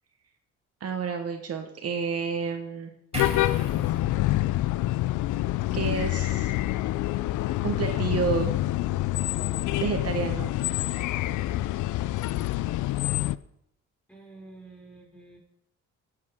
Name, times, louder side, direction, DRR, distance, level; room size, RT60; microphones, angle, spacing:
voice 1, 0.8-2.9 5.7-6.5 7.6-8.5 9.8-10.5, right 6 dB, 55° right, 4 dB, 1.3 m, -30 dB
sound 1, 3.1-13.4, left 16 dB, 75° left, 0.5 m, -27 dB
sound 2, 3.1-6.5 6.8-7.0, right 2 dB, 20° right, 3.9 m, -42 dB
voice 2, 14.1-15.4, right 2 dB, 5° left, -2 dB, 4.8 m, -48 dB
16.0 x 8.0 x 3.6 m, 0.79 s
cardioid pair, 90°, 30 cm